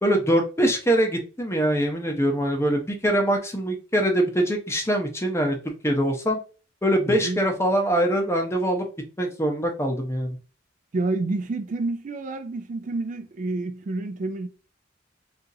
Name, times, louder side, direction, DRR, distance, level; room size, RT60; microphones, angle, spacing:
voice 1, 0.0-6.4 6.8-8.9 9.2-10.4, right 1 dB, 15° left, 0.7 m, -23 dB
voice 2, 7.1-7.4 10.9-14.5, right 2 dB, 45° right, 0.4 m, -29 dB
2.8 x 2.5 x 3.9 m
head